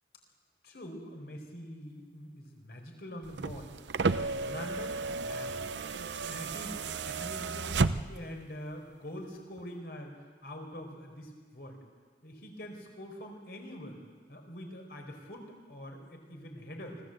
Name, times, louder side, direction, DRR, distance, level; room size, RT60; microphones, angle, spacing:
voice 1, 0.6-3.7 4.1-5.6 6.2-10.1 10.4-11.8 12.2-14.0 14.3-17.0, equal, 60° left, 3 dB, 4.4 m, -44 dB
sound 1, 3.2-8.4 9.6-9.7, right 4 dB, 80° right, 0.7 m, -33 dB
25.0 x 15.5 x 7.9 m, 1.5 s
head